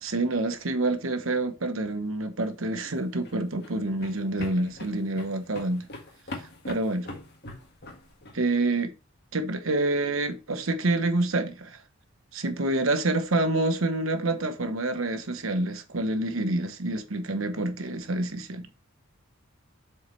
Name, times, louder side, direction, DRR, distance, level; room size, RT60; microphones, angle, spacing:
voice 1, 0.0-5.9 6.7-7.1 8.3-8.9 9.3-11.8 12.3-18.7, right 2 dB, 75° right, 1.1 m, -27 dB
sound 1, 2.7-8.4, left 2 dB, 50° left, 1.7 m, -42 dB
7.6 x 4.6 x 3.2 m
head